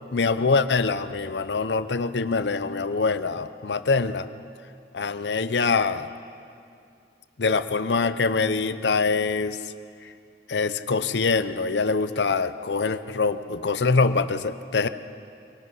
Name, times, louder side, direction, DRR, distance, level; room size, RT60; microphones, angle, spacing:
voice 1, 0.1-4.3 4.9-6.1 7.4-9.6 10.5-14.9, left 4 dB, 80° left, 12 dB, 0.7 m, -24 dB
25.5 x 19.0 x 5.7 m, 2.4 s
head